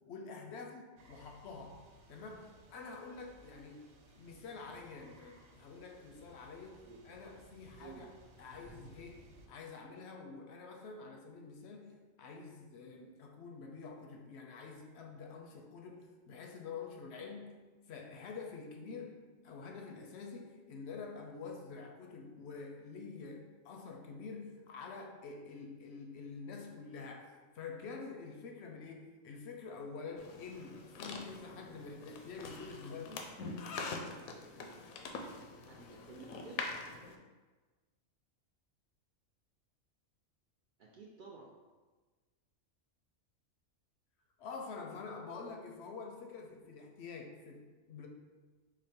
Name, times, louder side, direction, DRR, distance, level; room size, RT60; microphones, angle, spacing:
voice 1, 0.1-1.8 2.1-17.6 17.9-19.2 19.4-33.2 44.4-48.1, left 4 dB, 65° left, 2 dB, 0.7 m, -47 dB
sound 1, 1.0-9.5, right 2 dB, 90° right, 1.1 m, -60 dB
sound 2, 30.2-37.1, left 4 dB, 85° left, 1.0 m, -44 dB
voice 2, 35.5-36.6 40.8-41.6, right 4 dB, 70° right, -2 dB, 0.4 m, -52 dB
5.0 x 2.1 x 4.2 m, 1.3 s
omnidirectional pair, 1.4 m